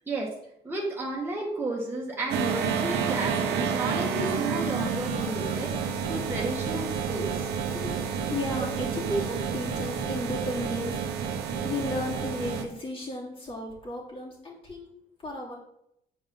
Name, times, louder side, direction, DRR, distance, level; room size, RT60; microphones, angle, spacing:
voice 1, 0.6-7.5 7.7-7.9, right 2 dB, 15° right, -4 dB, 1.6 m, -33 dB
sound 1, 2.3-12.6, right 6 dB, 80° right, 1.1 m, -30 dB
voice 2, 8.3-11.2 11.6-14.9 15.2-15.5, left 1 dB, 35° left, -4 dB, 3.0 m, -34 dB
8.1 x 4.8 x 3.8 m, 0.76 s
cardioid pair, 110°, 17 cm